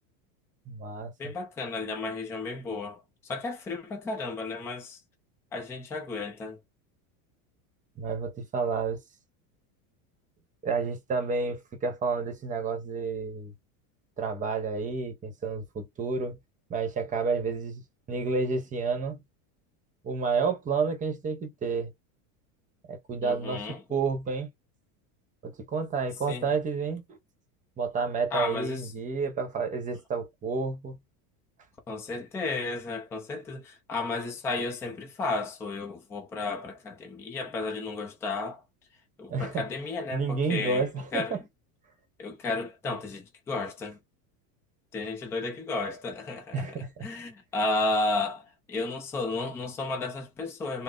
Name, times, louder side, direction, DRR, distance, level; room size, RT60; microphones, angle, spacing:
voice 1, 0.7-1.3 8.0-9.0 10.6-13.5 14.2-16.4 16.7-17.8 18.1-19.2 20.0-21.9 22.9-24.5 25.4-27.2 27.8-31.0 39.3-39.6 40.1-41.4 46.5-47.1, right 4 dB, 15° right, 0.8 m, -30 dB
voice 2, 1.2-5.0 5.5-6.6 23.2-23.8 26.3-26.5 28.3-28.9 31.9-38.6 39.2-40.9 41.1-41.4 42.2-44.0 44.9-46.7 47.0-50.8, left 3 dB, 5° left, 0.3 m, -33 dB
3.5 x 2.0 x 3.8 m
supercardioid pair, 160°, 44 cm